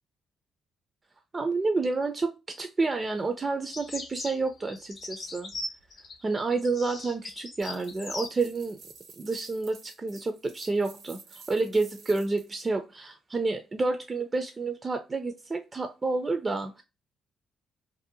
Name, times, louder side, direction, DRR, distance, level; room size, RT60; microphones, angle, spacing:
voice 1, 1.3-5.5 6.2-8.8 9.2-16.8, right 3 dB, 30° right, 0.3 m, -29 dB
sound 1, 3.7-8.3, left 2 dB, 50° left, 0.7 m, -39 dB
sound 2, 7.6-12.7, right 5 dB, 75° right, 0.7 m, -51 dB
2.6 x 2.0 x 2.6 m
cardioid pair, 90°, 0 cm